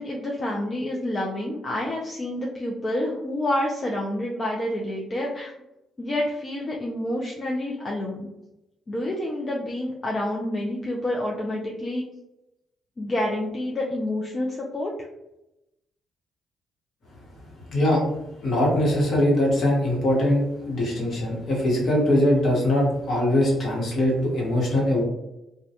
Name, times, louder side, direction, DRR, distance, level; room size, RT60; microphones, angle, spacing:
voice 1, 0.0-5.5 6.0-8.3 8.9-12.0 13.0-14.9, left 1 dB, 35° left, -2 dB, 0.4 m, -28 dB
voice 2, 17.7-18.0 18.4-25.0, left 1 dB, 60° left, -3 dB, 1.0 m, -22 dB
2.2 x 2.1 x 2.8 m, 0.91 s
cardioid pair, 90°, 0 cm